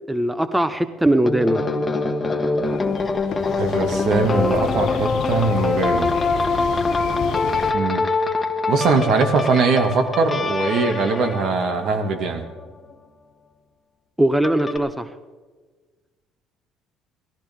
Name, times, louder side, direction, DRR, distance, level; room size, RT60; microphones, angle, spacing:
voice 1, 0.1-1.6 14.2-15.1, right 1 dB, 5° right, 11 dB, 0.8 m, -20 dB
sound 1, 1.3-12.6 14.4-14.8, left 3 dB, 25° left, 1.3 m, -24 dB
sound 2, 2.5-7.7, left 9 dB, 60° left, 0.8 m, -31 dB
voice 2, 3.6-6.1 7.7-8.0 8.7-12.4, right 4 dB, 65° right, 5 dB, 2.0 m, -21 dB
18.0 x 15.0 x 3.6 m, 1.4 s
supercardioid pair, 85°, 0 cm